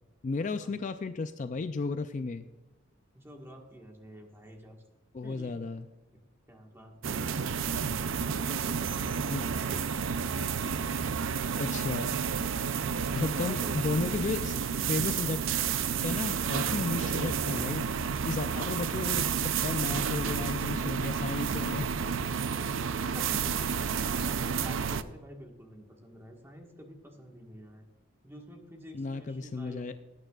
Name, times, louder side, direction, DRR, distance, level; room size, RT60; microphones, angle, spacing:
voice 1, 0.2-2.5 5.1-5.9 9.3-9.5 11.6-12.1 13.2-15.4 16.0-17.9 18.2-21.9 28.9-29.9, left 3 dB, 35° left, 9 dB, 0.4 m, -33 dB
voice 2, 3.1-4.8 5.2-5.6 6.1-6.2 6.5-7.5 8.2-10.3 13.2-13.7 16.5-16.6 23.1-27.8 28.2-29.9, equal, 10° right, 1 dB, 1.5 m, -49 dB
sound 1, 7.0-25.0, right 6 dB, 70° right, 0.5 m, -31 dB
17.5 x 9.0 x 2.4 m, 1.1 s
head